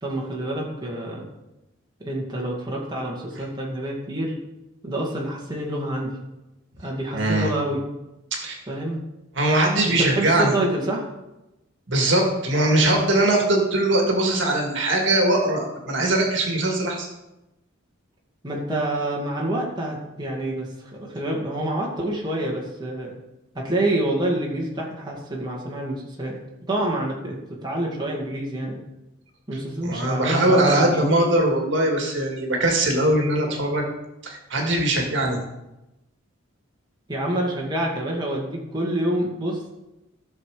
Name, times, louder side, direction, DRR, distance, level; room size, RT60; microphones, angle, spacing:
voice 1, 0.0-1.2 2.0-4.4 4.8-6.2 6.8-7.8 8.7-9.0 10.0-11.0 18.4-23.1 23.6-26.4 26.7-27.4 27.6-28.8 29.5-31.1 37.1-39.7, right 1 dB, 20° right, -3 dB, 2.0 m, -27 dB
voice 2, 7.1-7.5 8.3-8.6 9.4-10.5 11.9-17.1 29.8-33.9 34.2-35.4, right 1 dB, 60° right, 1 dB, 2.1 m, -21 dB
15.5 x 6.5 x 4.9 m, 0.97 s
head